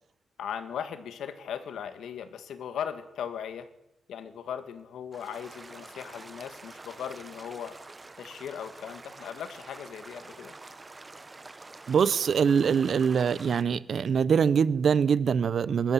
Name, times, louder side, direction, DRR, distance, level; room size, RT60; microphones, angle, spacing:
voice 1, 0.4-3.7 4.1-7.8 8.2-10.5, left 8 dB, 80° left, 2.1 m, -38 dB
sound 1, 5.1-13.6, right 3 dB, 20° right, 1.1 m, -47 dB
voice 2, 11.9-15.9, right 6 dB, 50° right, 0.8 m, -24 dB
20.5 x 13.5 x 9.8 m
wide cardioid pair, 160°, 0 cm